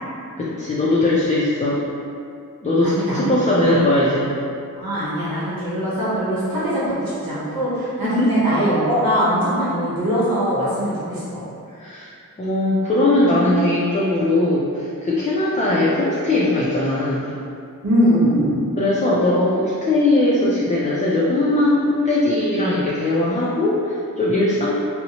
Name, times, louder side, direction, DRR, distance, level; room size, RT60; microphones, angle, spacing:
voice 1, 0.4-1.8 2.6-4.3 8.0-8.4 11.1-11.3 11.8-12.1 12.4-17.3 18.8-24.7, left 2 dB, 20° left, -7 dB, 0.4 m, -19 dB
voice 2, 2.8-3.3 3.7-3.8 4.0-4.1 4.8-11.4 17.8-18.6, equal, 75° right, -9 dB, 0.9 m, -21 dB
2.7 x 2.1 x 2.8 m, 2.4 s
wide cardioid pair, 40°, 35 cm